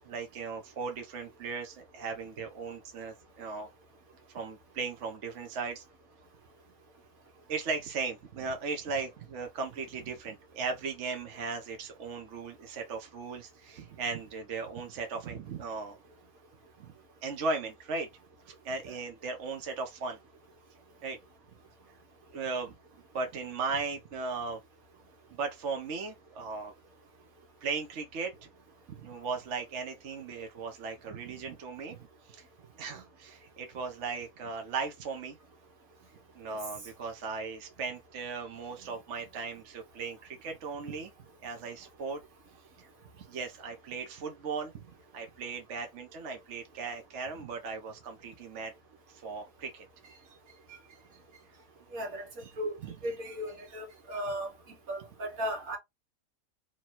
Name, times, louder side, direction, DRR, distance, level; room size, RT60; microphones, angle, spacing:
voice 1, 0.0-3.7 4.3-5.8 7.5-16.0 16.8-16.9 17.2-18.1 18.5-20.2 21.0-21.2 22.3-22.8 23.1-24.6 25.3-26.7 27.6-28.3 28.9-32.0 32.3-32.5 32.8-35.4 36.3-41.1 41.4-42.2 42.8-42.9 43.2-44.8 45.1-48.7 49.1-49.9 52.8-52.9, right 4 dB, 60° right, 1.1 m, -37 dB
voice 2, 51.9-52.2 52.6-52.7 53.0-54.5 54.9-55.8, equal, 75° right, 1.7 m, -35 dB
3.0 x 3.0 x 4.3 m
omnidirectional pair, 1.5 m